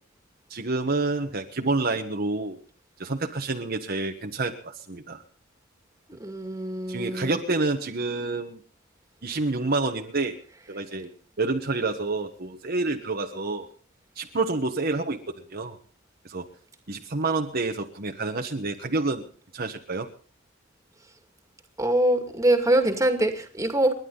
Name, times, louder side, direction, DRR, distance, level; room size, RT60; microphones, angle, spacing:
voice 1, 0.5-2.6 3.0-5.2 6.9-8.6 9.2-10.4 10.7-11.1 11.4-13.7 14.2-15.2 15.5-15.8 16.2-16.5 16.9-19.2 19.5-20.1, right 3 dB, 50° right, 4 dB, 1.4 m, -28 dB
voice 2, 6.2-7.4 21.8-23.9, right 1 dB, 15° right, 6 dB, 2.3 m, -23 dB
30.0 x 11.0 x 4.0 m, 0.42 s
head